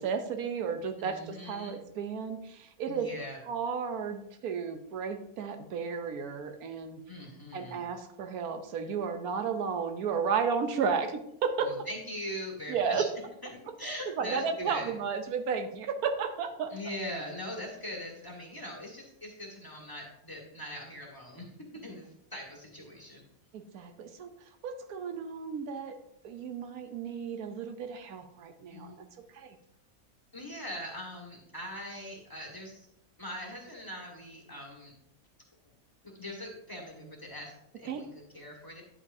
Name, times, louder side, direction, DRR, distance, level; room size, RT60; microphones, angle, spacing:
voice 1, 0.0-3.1 3.5-7.0 7.5-11.7 12.7-13.0 13.8-16.7 23.5-24.3 24.6-26.0 26.2-29.0 29.3-29.5 37.9-38.0, right 6 dB, 85° right, 7 dB, 1.2 m, -33 dB
voice 2, 1.0-1.7 2.9-3.4 7.1-7.8 11.6-13.1 13.4-15.0 16.7-23.2 28.7-29.0 30.3-32.9 33.2-34.9 36.1-38.8, left 1 dB, 15° left, -1 dB, 1.6 m, -41 dB
9.9 x 7.9 x 2.7 m, 0.78 s
omnidirectional pair, 1.5 m